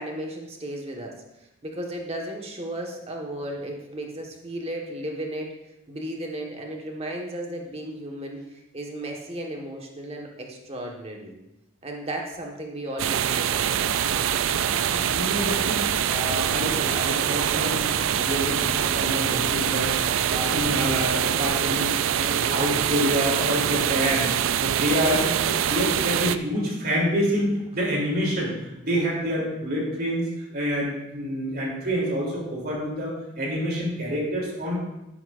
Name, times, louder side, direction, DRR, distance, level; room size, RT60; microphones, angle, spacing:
voice 1, 0.0-5.5 5.9-8.4 8.7-11.3 11.8-13.8 31.3-31.4, right 1 dB, 30° right, 1 dB, 1.5 m, -35 dB
sound 1, 13.0-26.4, right 9 dB, 70° right, 0.4 m, -24 dB
Drum kit, 13.5-21.5, equal, 20° left, 2.7 m, -41 dB
voice 2, 14.5-24.3 24.6-34.8, equal, 50° right, -3 dB, 3.3 m, -27 dB
12.0 x 10.5 x 2.6 m, 0.92 s
head